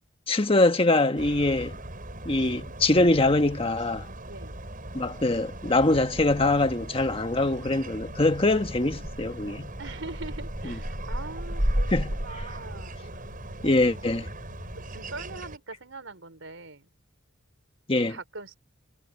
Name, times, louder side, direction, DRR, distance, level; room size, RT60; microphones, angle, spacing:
voice 1, 0.3-1.8 2.2-4.1 4.9-9.7 11.9-12.1 13.6-14.3 17.9-18.2, left 2 dB, 25° left, 1.4 m, -23 dB
sound 1, 1.1-15.6, right 1 dB, 45° right, 7.5 m, -35 dB
voice 2, 4.3-4.6 8.5-13.0 13.6-14.2 14.8-16.9 18.0-18.5, right 3 dB, 70° right, 4.4 m, -43 dB
sound 2, 7.8-15.1, equal, 80° left, 3.7 m, -49 dB
head